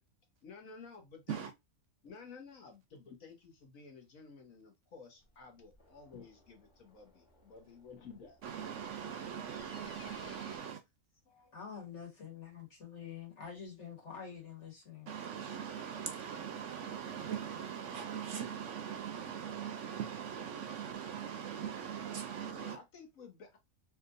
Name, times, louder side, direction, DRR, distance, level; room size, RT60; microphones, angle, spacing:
voice 1, 0.4-1.5 2.0-8.4 22.5-23.6, left 5 dB, 70° left, 1.4 m, -53 dB
sound 1, 5.2-10.6, left 2 dB, 35° left, 1.6 m, -60 dB
voice 2, 8.4-10.8 15.1-22.8, right 8 dB, 70° right, 0.8 m, -41 dB
voice 3, 11.2-15.1, left 7 dB, 55° left, 1.8 m, -47 dB
3.4 x 2.9 x 2.5 m
omnidirectional pair, 1.5 m